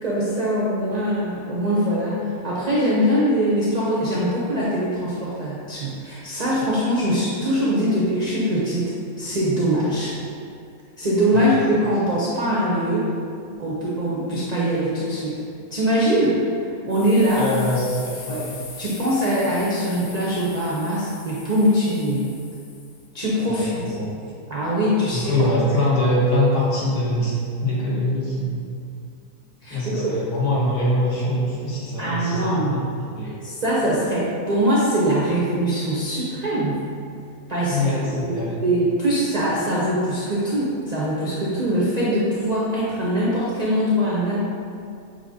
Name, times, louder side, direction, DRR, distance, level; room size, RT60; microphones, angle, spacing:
voice 1, 0.0-8.9 9.2-10.1 11.0-13.1 13.6-15.4 15.7-16.4 16.9-17.4 18.3-18.5 18.8-22.3 23.1-23.9 24.5-25.3 29.6-30.1 32.0-32.8 33.4-36.8 37.5-44.4, equal, 75° right, -7 dB, 0.3 m, -22 dB
sound 1, 16.9-23.1, left 3 dB, 65° left, 1.1 m, -41 dB
voice 2, 17.4-18.4 23.5-24.1 25.1-27.3 27.6-28.6 29.7-33.4 37.7-38.5, left 1 dB, 80° left, -7 dB, 1.7 m, -23 dB
6.7 x 2.8 x 2.7 m, 2.4 s
omnidirectional pair, 1.7 m